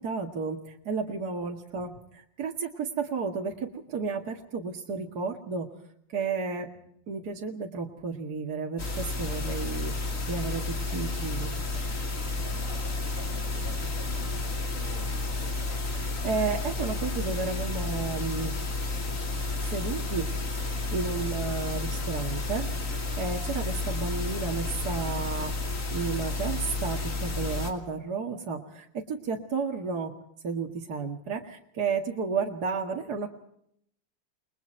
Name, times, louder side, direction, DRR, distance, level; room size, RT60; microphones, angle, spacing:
voice 1, 0.0-5.7 6.1-6.7 7.1-12.0 15.9-18.5 19.6-20.3 20.5-25.5 25.9-30.1 30.4-33.3, right 5 dB, 55° right, 1 dB, 2.5 m, -32 dB
sound 1, 8.8-27.7, left 2 dB, 45° left, 3.0 m, -31 dB
voice 2, 12.4-15.8, equal, 25° left, 0 dB, 6.6 m, -48 dB
29.5 x 22.0 x 4.5 m, 0.71 s
omnidirectional pair, 2.0 m